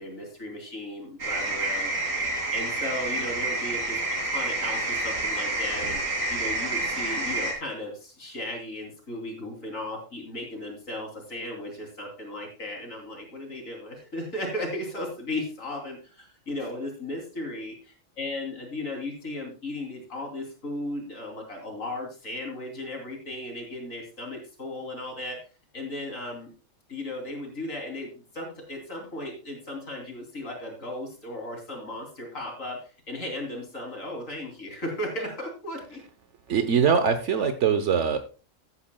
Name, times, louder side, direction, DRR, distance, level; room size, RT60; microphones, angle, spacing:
voice 1, 0.0-6.0 6.3-25.4 25.7-26.5 26.9-28.1 28.3-36.0, left 1 dB, 85° left, 1 dB, 3.5 m, -36 dB
sound 1, 1.2-7.5, right 2 dB, 85° right, 3.1 m, -28 dB
voice 2, 36.5-38.2, right 6 dB, 70° right, 9 dB, 1.2 m, -22 dB
14.5 x 9.6 x 2.2 m, 0.34 s
omnidirectional pair, 1.3 m